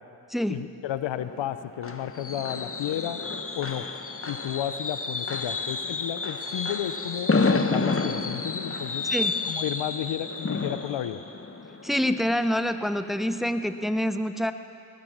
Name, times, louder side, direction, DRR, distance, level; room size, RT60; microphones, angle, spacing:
voice 1, 0.5-3.2 3.6-3.9 4.3-9.1 9.5-11.2, left 11 dB, 70° left, 12 dB, 1.0 m, -32 dB
Fireworks, 1.2-12.9 13.2-13.5 13.8-13.9, left 3 dB, 30° left, 1.6 m, -30 dB
voice 2, 11.8-14.5, equal, ahead, 9 dB, 1.2 m, -26 dB
21.5 x 19.5 x 7.5 m, 2.7 s
hypercardioid pair, 45°, 46 cm